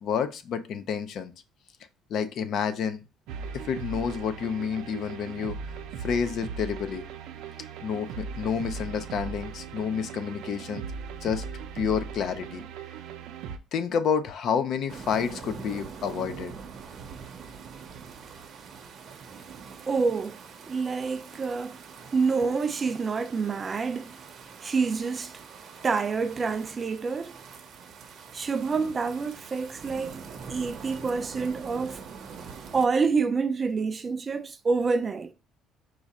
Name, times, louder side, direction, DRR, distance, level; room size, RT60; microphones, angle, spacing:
voice 1, 0.0-1.3 2.1-3.0 3.5-5.6 6.0-7.0 7.8-10.8 11.2-11.4 11.7-12.6 13.7-16.5, left 7 dB, 55° left, 0.5 m, -29 dB
sound 1, 3.3-13.6, right 6 dB, 85° right, 0.5 m, -38 dB
sound 2, 14.9-32.9, right 6 dB, 45° right, 0.7 m, -44 dB
voice 2, 19.9-20.4 20.7-21.8 22.1-24.2 24.6-25.4 25.8-27.4 28.3-32.0 32.7-35.3, right 4 dB, 25° right, 0.3 m, -27 dB
4.7 x 2.4 x 4.1 m
cardioid pair, 150°, 0 cm